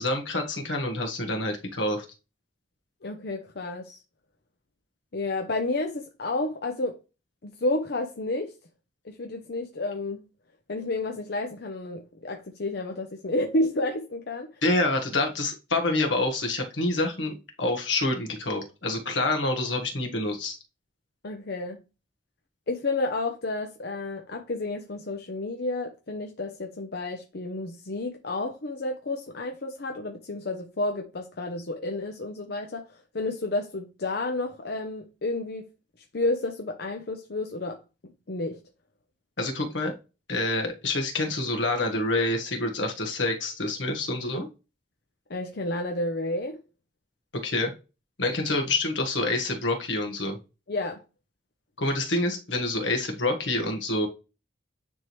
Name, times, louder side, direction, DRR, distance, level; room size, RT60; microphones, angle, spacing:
voice 1, 0.0-2.0 14.6-20.6 39.4-39.9 40.3-44.5 47.3-47.7 48.2-50.4 51.8-54.1, left 2 dB, 80° left, 1.5 m, -27 dB
voice 2, 3.0-4.0 5.1-7.0 7.4-8.5 9.0-10.3 10.7-14.6 21.2-21.8 22.7-35.7 36.1-37.8 38.3-38.6 45.3-46.6 50.7-51.0, left 2 dB, 60° left, 0.7 m, -31 dB
9.7 x 3.7 x 3.1 m
head